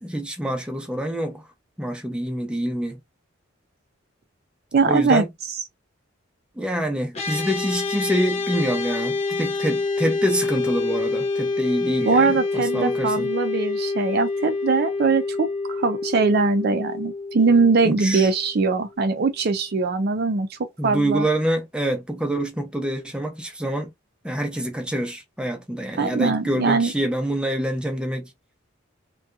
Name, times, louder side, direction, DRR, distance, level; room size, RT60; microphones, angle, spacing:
voice 1, 0.0-1.4 1.8-3.0 4.9-5.3 6.6-13.3 17.8-18.3 20.8-23.9 24.2-28.3, right 1 dB, 5° right, 0.5 m, -26 dB
voice 2, 4.7-5.2 12.0-21.3 26.0-26.9, right 4 dB, 50° right, 0.4 m, -21 dB
sound 1, 7.1-18.6, left 3 dB, 35° left, 0.8 m, -27 dB
2.7 x 2.3 x 2.3 m
head